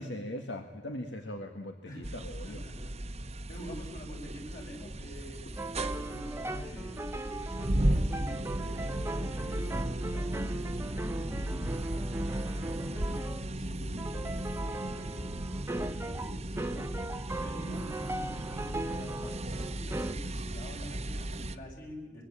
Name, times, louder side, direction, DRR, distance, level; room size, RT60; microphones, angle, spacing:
voice 1, 0.0-2.6, left 1 dB, 70° left, 6 dB, 1.8 m, -40 dB
voice 2, 1.8-2.2 2.4-22.2, equal, 50° left, 0 dB, 7.4 m, -47 dB
sound 1, 2.0-21.6, right 1 dB, 35° right, 1.1 m, -35 dB
sound 2, 5.6-13.5 14.0-20.1, right 2 dB, 15° right, 0.8 m, -38 dB
24.5 x 22.0 x 8.8 m, 1.4 s
head